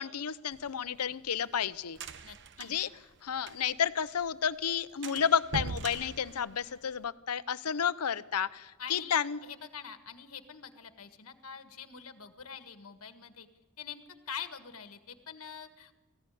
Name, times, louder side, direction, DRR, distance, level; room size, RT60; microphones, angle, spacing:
voice 1, 0.0-2.0 2.6-2.9 3.2-9.4, left 8 dB, 85° left, 16 dB, 0.7 m, -31 dB
sound 1, 0.5-3.9 4.2-4.3 4.6-4.7 5.0-7.1, right 4 dB, 55° right, 0.9 m, -42 dB
voice 2, 2.2-2.8 8.8-13.5 13.8-16.0, left 7 dB, 70° left, 8 dB, 1.5 m, -45 dB
20.0 x 15.0 x 10.0 m, 1.2 s
head